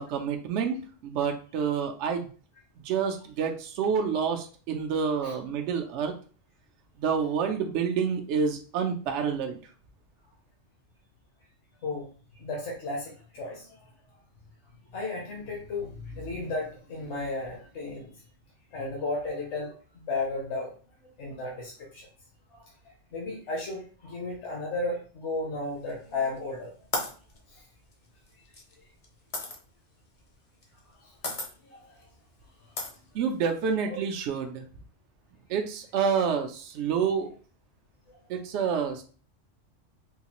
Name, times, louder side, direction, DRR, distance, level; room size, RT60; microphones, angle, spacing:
voice 1, 0.0-2.3 2.8-6.1 7.0-9.6 33.1-34.6 35.5-37.3 38.3-39.0, right 6 dB, 75° right, 4 dB, 0.8 m, -28 dB
voice 2, 12.4-13.9 14.9-18.1 18.7-19.7 20.0-20.7 21.2-22.1 22.5-22.6 23.1-26.7 27.5-27.6 28.4-28.5 31.0-31.2 31.6-31.8 33.9-34.0 38.1-38.2, left 2 dB, 70° left, -3 dB, 1.3 m, -34 dB
sound 1, 25.9-26.4 26.9-29.6 30.6-30.9 31.2-31.5 32.0-32.1 32.8-33.7, left 2 dB, 40° left, 0.6 m, -34 dB
3.7 x 2.4 x 2.9 m, 0.39 s
omnidirectional pair, 1.3 m